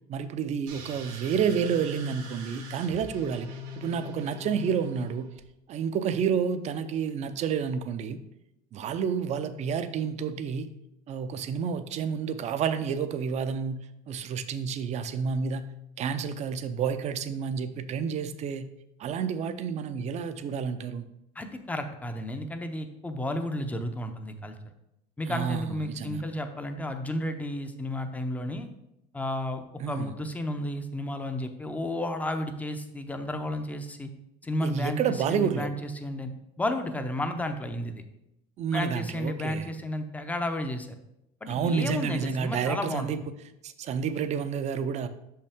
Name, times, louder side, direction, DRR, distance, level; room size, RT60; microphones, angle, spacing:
voice 1, 0.1-5.3 5.7-8.2 8.7-10.7 11.1-13.8 14.1-15.7 16.0-18.7 19.0-21.0 25.3-26.2 29.8-30.1 34.6-35.7 38.6-39.7 41.5-43.2 43.6-45.1, right 7 dB, 40° right, 11 dB, 0.5 m, -30 dB
sound 1, 0.7-5.4, left 2 dB, 90° right, 1.6 m, -41 dB
voice 2, 21.4-24.6 25.2-28.7 29.1-34.1 34.4-35.0 35.3-36.3 36.6-38.0 38.7-40.9 41.4-43.1, left 1 dB, 10° left, 7 dB, 0.5 m, -32 dB
6.2 x 5.6 x 3.5 m, 0.84 s
cardioid pair, 135°, 18 cm